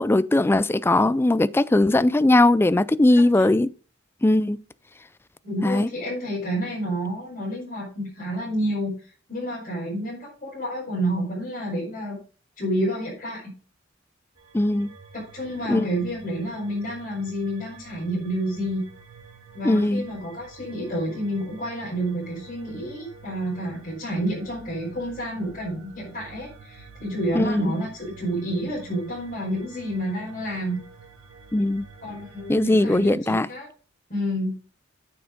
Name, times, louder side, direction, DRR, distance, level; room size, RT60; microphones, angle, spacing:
voice 1, 0.0-3.7 4.2-4.6 5.6-5.9 14.5-14.9 15.7-15.9 19.6-20.1 27.3-27.7 31.5-31.8 32.5-33.5, left 2 dB, 10° left, 0.3 m, -19 dB
voice 2, 3.1-3.5 5.4-12.2 12.6-13.5 15.1-18.8 19.5-30.8 32.0-33.7 34.1-34.5, equal, 40° left, 5.0 m, -29 dB
sound 1, 14.4-33.1, right 4 dB, 85° right, 2.8 m, -48 dB
9.3 x 7.0 x 5.1 m
head